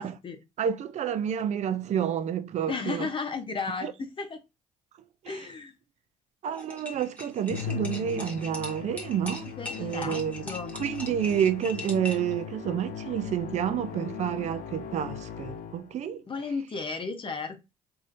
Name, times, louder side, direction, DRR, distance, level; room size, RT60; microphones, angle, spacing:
voice 1, 0.0-0.4 2.7-4.4 5.3-5.7 9.6-10.8 16.3-17.6, left 4 dB, 35° left, 0.9 m, -34 dB
voice 2, 0.6-3.1 3.8-3.9 5.2-5.4 6.4-9.5 9.8-10.4 10.8-16.2, right 9 dB, 55° right, 0.5 m, -29 dB
sound 1, 6.5-12.3, left 2 dB, 10° left, 1.0 m, -40 dB
Musical instrument, 7.5-16.0, left 8 dB, 65° left, 0.6 m, -39 dB
3.2 x 2.7 x 2.5 m
supercardioid pair, 70°, 15 cm